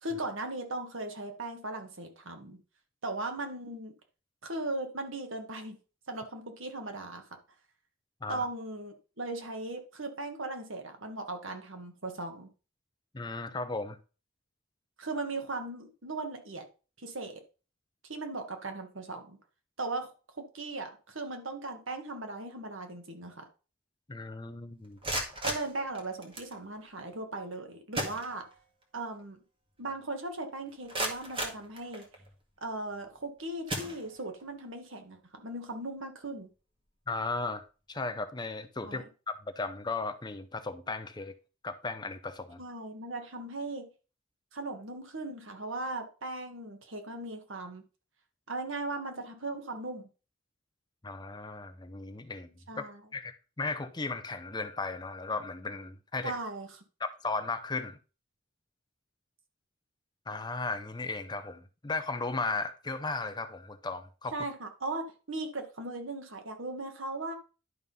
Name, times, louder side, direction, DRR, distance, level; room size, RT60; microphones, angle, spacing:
voice 1, 0.0-2.6 3.0-3.9 4.4-5.8 6.1-7.3 8.3-12.5 15.0-16.6 17.0-17.4 18.0-19.4 19.8-23.5 25.4-28.4 28.9-29.4 29.8-32.0 32.6-36.5 38.8-39.0 42.6-43.9 44.5-47.8 48.5-50.1 52.7-53.0 56.2-56.7 64.3-67.3, right 2 dB, 70° right, 1.6 m, -38 dB
voice 2, 13.1-14.0 24.1-25.0 37.1-37.6 37.9-41.3 41.6-42.6 51.0-52.8 53.1-56.3 57.0-58.0 60.3-64.3, left 3 dB, 20° left, 0.6 m, -36 dB
sound 1, 24.8-26.6 27.5-27.6 27.9-28.8 29.2-29.3 29.8-29.9 30.5-32.3 33.0-33.2 33.6-34.5, right 1 dB, 25° right, 1.8 m, -36 dB
11.0 x 3.7 x 5.5 m
head